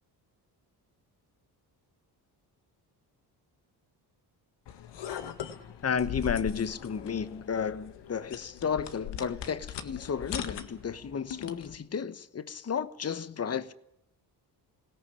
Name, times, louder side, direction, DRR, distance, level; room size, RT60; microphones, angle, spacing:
sound 1, 4.7-11.8, left 9 dB, 85° left, 1.8 m, -40 dB
voice 1, 5.8-13.7, left 6 dB, 35° left, 1.1 m, -32 dB
21.0 x 17.5 x 9.9 m
cardioid pair, 110°, 41 cm